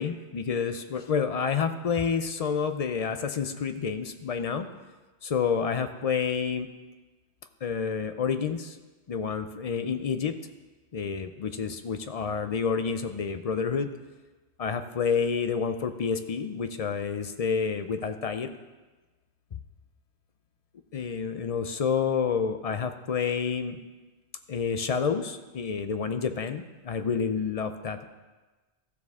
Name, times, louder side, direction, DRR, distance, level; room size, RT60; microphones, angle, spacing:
voice 1, 0.0-4.7 5.2-6.7 7.6-8.8 9.1-10.3 10.9-13.9 14.6-18.6 20.9-23.8 24.5-28.0, left 6 dB, 45° left, 8 dB, 0.5 m, -29 dB
14.5 x 6.5 x 3.6 m, 1.2 s
omnidirectional pair, 1.1 m